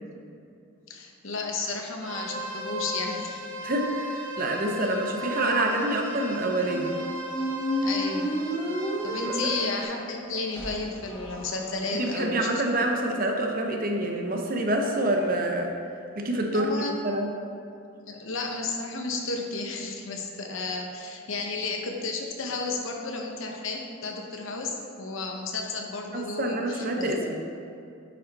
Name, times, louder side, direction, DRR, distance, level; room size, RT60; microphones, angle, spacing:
voice 1, 0.9-3.4 7.8-8.4 9.0-12.6 16.5-16.9 17.9-27.3, left 3 dB, 65° left, 2 dB, 0.9 m, -33 dB
sound 1, 2.0-9.8, right 1 dB, 65° right, 1.2 m, -36 dB
voice 2, 3.6-6.9 9.2-9.5 11.9-15.7 16.2-17.3 26.1-27.4, right 1 dB, 40° right, 2 dB, 0.8 m, -27 dB
sound 2, 6.3-12.2, equal, 5° left, 1.2 m, -32 dB
8.9 x 5.4 x 4.1 m, 2.6 s
head